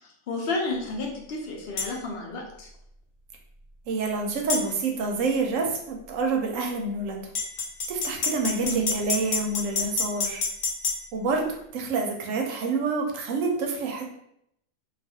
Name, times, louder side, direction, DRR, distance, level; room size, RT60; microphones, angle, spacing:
voice 1, 0.3-2.7 8.6-8.9, left 1 dB, 60° left, -1 dB, 0.7 m, -31 dB
sound 1, 1.8-1.9 4.5-4.7 7.3-11.0, left 4 dB, 90° left, 1.2 m, -27 dB
voice 2, 3.9-7.2 7.9-10.4 11.1-14.0, right 3 dB, 80° right, 1 dB, 1.0 m, -27 dB
2.5 x 2.3 x 2.7 m, 0.75 s
omnidirectional pair, 1.4 m